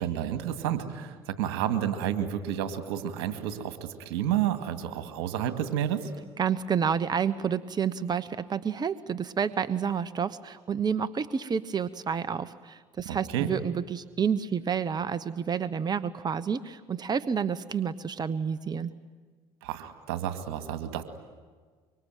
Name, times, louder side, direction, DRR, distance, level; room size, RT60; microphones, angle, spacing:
voice 1, 0.0-6.1 13.1-13.5 19.6-21.0, right 10 dB, 80° right, 9 dB, 2.3 m, -30 dB
voice 2, 6.4-18.9, right 7 dB, 30° right, 14 dB, 1.1 m, -29 dB
25.0 x 24.0 x 9.3 m, 1.5 s
hypercardioid pair, 70°, 13 cm